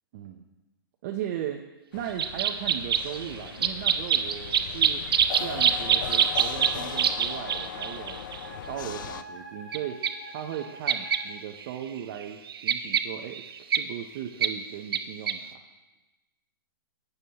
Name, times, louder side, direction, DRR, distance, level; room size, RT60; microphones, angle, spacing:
voice 1, 0.1-0.4 1.0-1.6 1.9-5.0 5.4-8.2 8.7-13.4 13.7-15.6, right 10 dB, 35° right, 3 dB, 0.5 m, -37 dB
sound 1, 1.9-9.2, left 9 dB, 60° left, 0.4 m, -39 dB
sound 2, 2.2-8.5 9.7-9.8 10.0-10.1 10.9-11.2 11.6-11.7 12.0-13.8 14.4-14.5 14.9-15.0 15.3-15.4, right 8 dB, 85° right, 0.6 m, -25 dB
Wind instrument woodwind instrument, 6.6-11.3, right 1 dB, 5° left, 2.3 m, -45 dB
12.5 x 7.9 x 2.9 m, 1.1 s
hypercardioid pair, 160°, 12 cm